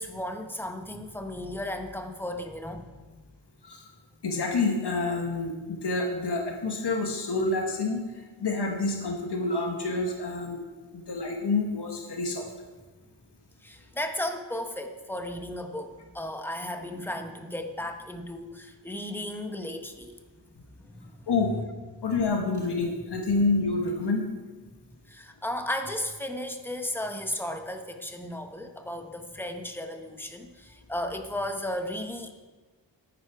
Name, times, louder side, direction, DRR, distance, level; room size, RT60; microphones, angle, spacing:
voice 1, 0.0-2.9 13.6-20.2 20.8-21.1 21.4-21.5 25.1-32.3, left 1 dB, 5° left, 5 dB, 0.9 m, -35 dB
voice 2, 4.2-8.0 8.4-10.6 10.9-12.5 21.3-21.5 22.0-24.3, left 3 dB, 60° left, 2 dB, 1.3 m, -28 dB
9.9 x 9.7 x 4.7 m, 1.3 s
wide cardioid pair, 120°, 45 cm